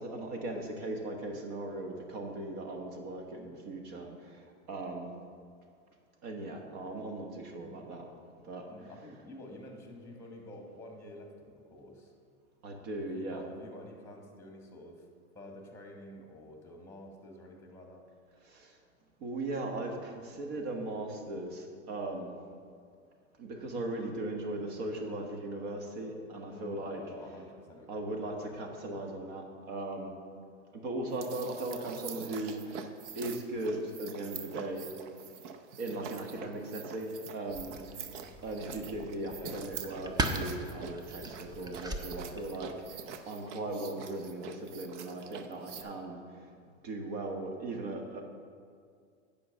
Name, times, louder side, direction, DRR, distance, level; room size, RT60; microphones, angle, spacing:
voice 1, 0.0-5.1 6.2-8.0 8.4-8.6 12.6-13.4 18.4-18.8 19.2-22.3 23.4-27.0 27.9-30.1 30.7-32.9 33.1-34.9 35.8-37.7 38.4-43.0 43.3-46.2 46.8-48.2, right 2 dB, 55° right, 3 dB, 1.6 m, -38 dB
voice 2, 3.9-4.2 7.6-7.9 8.7-12.1 13.0-15.0 15.3-18.0 26.5-28.6 39.3-39.6, left 1 dB, 5° left, 2 dB, 1.6 m, -49 dB
sound 1, 31.1-45.8, right 7 dB, 70° right, 0.8 m, -45 dB
sound 2, 37.5-42.9, right 2 dB, 10° right, 0.5 m, -39 dB
9.8 x 5.2 x 6.5 m, 2.2 s
hypercardioid pair, 120°, 37 cm